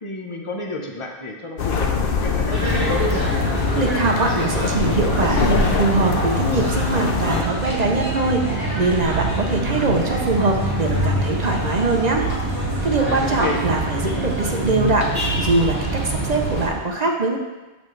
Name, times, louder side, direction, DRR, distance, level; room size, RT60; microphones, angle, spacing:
voice 1, 0.0-3.0 13.3-13.6, left 2 dB, 30° left, 1 dB, 0.9 m, -30 dB
sound 1, 1.6-7.4, left 5 dB, 60° left, 0.8 m, -23 dB
sound 2, 2.5-16.7, right 1 dB, 20° right, 1.8 m, -25 dB
voice 2, 3.7-12.3 12.8-17.4, right 3 dB, 45° right, 2 dB, 0.7 m, -22 dB
7.3 x 6.8 x 3.2 m, 1.2 s
omnidirectional pair, 1.2 m